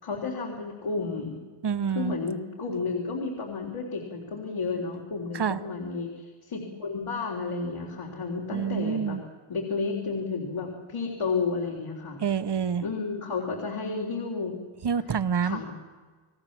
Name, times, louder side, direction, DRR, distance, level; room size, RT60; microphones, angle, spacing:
voice 1, 0.0-1.4 1.9-9.2 9.5-12.2 12.8-14.5 15.4-15.7, left 4 dB, 80° left, -1 dB, 3.7 m, -32 dB
voice 2, 1.6-2.2 5.3-5.6 8.5-9.2 12.2-12.8 14.8-15.6, right 7 dB, 55° right, 12 dB, 1.1 m, -27 dB
29.0 x 19.0 x 7.4 m, 1.4 s
wide cardioid pair, 105°, 49 cm